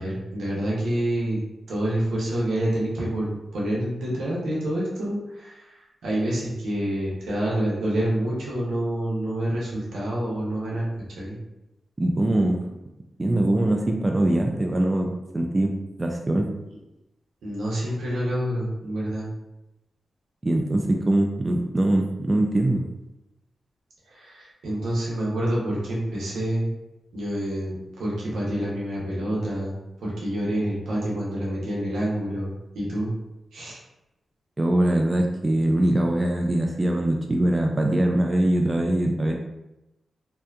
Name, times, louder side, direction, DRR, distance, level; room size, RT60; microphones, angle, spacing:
voice 1, 0.0-1.4 1.7-5.7 6.0-10.9 11.2-11.4 17.4-19.3 24.1-26.7 27.1-33.1 33.5-33.8, right 1 dB, 85° right, -5 dB, 0.7 m, -27 dB
voice 2, 12.0-12.6 13.2-15.7 16.0-16.5 20.4-22.8 34.6-39.3, right 1 dB, 30° right, 2 dB, 0.3 m, -22 dB
2.7 x 2.1 x 2.3 m, 0.95 s
supercardioid pair, 40°, 0 cm